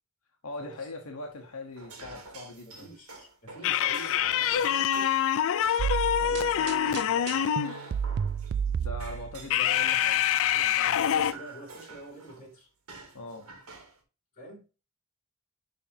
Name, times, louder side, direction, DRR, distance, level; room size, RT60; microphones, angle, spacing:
voice 1, 0.4-2.9 8.6-10.2 10.5-11.3 13.1-13.5, left 2 dB, 90° left, 1.1 m, -41 dB
sound 1, 1.2-8.7 9.0-12.4 12.9-14.0, right 3 dB, 85° right, 1.6 m, -47 dB
voice 2, 2.6-5.1 6.2-7.5 10.5-10.7 11.1-12.7 14.3-14.7, right 1 dB, 40° left, 2.9 m, -47 dB
sound 2, 3.6-7.8 9.5-11.3, left 10 dB, 65° left, 0.4 m, -25 dB
sound 3, 5.8-9.5, right 7 dB, 50° right, 0.3 m, -31 dB
9.9 x 3.5 x 2.7 m
head